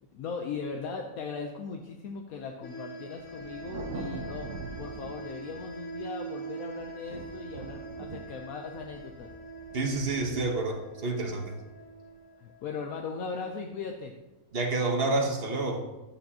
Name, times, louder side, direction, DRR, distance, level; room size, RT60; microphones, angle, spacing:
voice 1, 0.0-9.3 12.4-14.1, left 5 dB, 75° left, 2 dB, 1.2 m, -38 dB
sound 1, 2.6-13.1, right 3 dB, 55° left, 1.4 m, -43 dB
Thunder, 3.2-6.3 6.7-12.1, right 3 dB, 60° right, 1.2 m, -44 dB
voice 2, 9.7-11.5 14.5-15.8, right 2 dB, 45° right, 3 dB, 1.3 m, -29 dB
11.5 x 8.6 x 2.9 m, 1.1 s
omnidirectional pair, 1.6 m